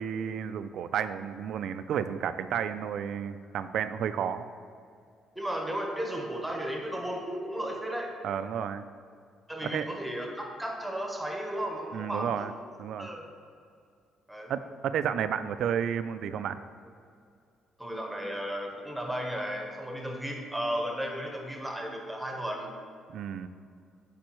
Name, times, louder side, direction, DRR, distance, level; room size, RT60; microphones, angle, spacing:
voice 1, 0.0-4.5 8.2-8.8 9.6-9.9 11.9-12.5 12.8-13.1 14.5-16.6 23.1-23.5, right 8 dB, 70° right, 11 dB, 0.3 m, -32 dB
voice 2, 5.3-8.1 9.5-12.5 13.0-13.2 14.3-14.5 17.8-22.7, right 1 dB, 5° right, 1 dB, 1.1 m, -34 dB
8.6 x 5.1 x 3.1 m, 2.3 s
cardioid pair, 105°, 0 cm